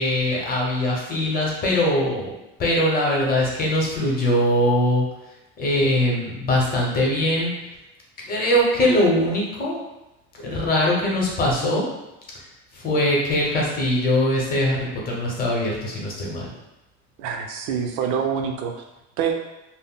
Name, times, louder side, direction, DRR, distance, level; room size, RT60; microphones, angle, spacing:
voice 1, 0.0-2.3 2.6-5.1 5.6-7.5 8.2-9.7 10.3-11.9 12.3-12.5 12.7-16.5, left 1 dB, 30° left, -3 dB, 0.7 m, -22 dB
voice 2, 17.2-18.7 19.2-19.3, right 7 dB, 75° right, 3 dB, 0.5 m, -25 dB
2.2 x 2.0 x 3.7 m, 0.96 s
cardioid pair, 145°, 30 cm